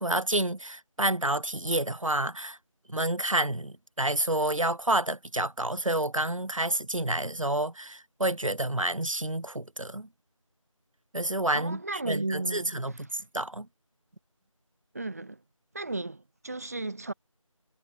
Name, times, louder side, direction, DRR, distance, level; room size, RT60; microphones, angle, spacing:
voice 1, 0.0-2.6 2.9-10.1 11.1-11.8 12.1-12.9 13.3-13.7, right 1 dB, 70° right, 2.6 m, -29 dB
voice 2, 11.5-13.0 14.9-15.4 15.7-17.1, right 2 dB, 30° right, 6.4 m, -34 dB
figure-of-eight pair, 175°, 17 cm